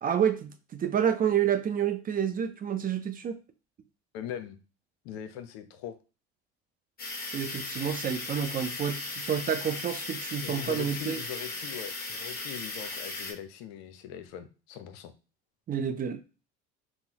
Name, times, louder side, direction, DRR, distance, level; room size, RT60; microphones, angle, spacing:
voice 1, 0.0-3.4 7.3-11.2 15.7-16.2, right 8 dB, 30° right, 0.4 m, -29 dB
voice 2, 4.1-4.6 5.0-5.9 10.4-15.1, left 9 dB, 70° left, 0.6 m, -41 dB
sound 1, 7.0-13.3, left 3 dB, 30° left, 1.1 m, -37 dB
3.7 x 2.0 x 2.9 m
hypercardioid pair, 70°, 32 cm